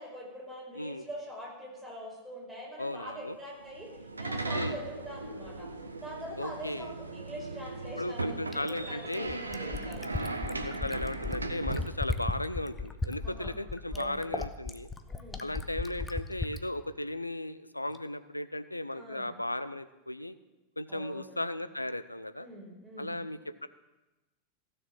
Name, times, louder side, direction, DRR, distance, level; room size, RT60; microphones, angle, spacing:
voice 1, 0.0-3.9 4.2-5.7 6.0-10.1 13.2-13.5 13.9-14.3 15.1-15.5 18.9-19.4 20.9-21.5 22.3-23.2, equal, 5° right, -4 dB, 5.1 m, -44 dB
voice 2, 0.7-1.1 2.8-3.4 4.5-4.8 6.4-6.9 8.0-9.4 10.0-14.9 15.4-20.4 20.8-22.5 23.0-23.7, left 1 dB, 85° left, 13 dB, 0.6 m, -36 dB
sound 1, 3.6-11.9, right 3 dB, 80° right, 0.9 m, -38 dB
Fill (with liquid), 8.5-16.6 17.9-18.0, left 3 dB, 10° left, 0.9 m, -35 dB
15.5 x 6.6 x 7.4 m, 1.1 s
figure-of-eight pair, 90°, 0 cm